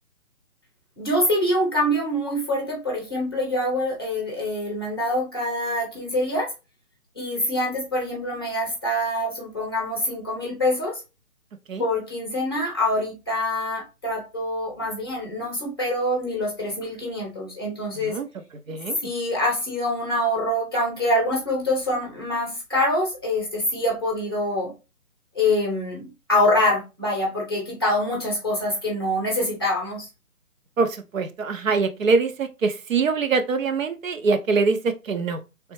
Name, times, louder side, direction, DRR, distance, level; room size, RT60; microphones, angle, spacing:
voice 1, 1.0-6.5 7.2-11.0 11.8-18.2 19.0-24.7 25.3-30.1, left 1 dB, 15° left, 0.7 m, -25 dB
voice 2, 17.9-18.3 18.7-19.1 30.8-35.4, right 4 dB, 65° right, 0.6 m, -24 dB
3.7 x 3.3 x 3.0 m
hypercardioid pair, 170°, 44 cm